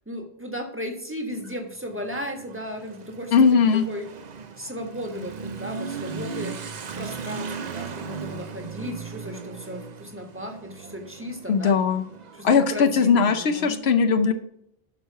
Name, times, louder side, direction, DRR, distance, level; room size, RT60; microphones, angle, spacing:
voice 1, 0.1-4.1 4.6-11.8 12.3-13.8, equal, 10° right, 3 dB, 1.4 m, -35 dB
Motorcycle / Accelerating revving vroom, 1.3-13.6, right 5 dB, 50° right, 0.7 m, -38 dB
voice 2, 3.3-3.8 11.5-12.0 12.4-14.3, left 6 dB, 85° left, 8 dB, 1.0 m, -19 dB
11.5 x 4.7 x 5.6 m, 0.73 s
omnidirectional pair, 1.0 m